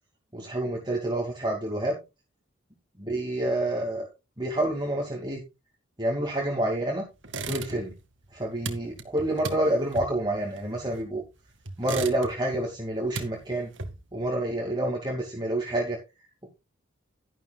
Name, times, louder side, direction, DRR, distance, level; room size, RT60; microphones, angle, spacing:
voice 1, 0.3-2.0 3.0-4.1 4.4-5.4 6.0-7.0 7.4-7.9 8.3-11.2 11.8-13.7 14.1-16.0, right 1 dB, 20° right, -1 dB, 2.5 m, -28 dB
sound 1, 7.2-8.0 8.3-11.2 11.6-12.6 12.9-14.2, right 3 dB, 60° right, 2.2 m, -37 dB
12.0 x 11.5 x 2.4 m, 0.26 s
head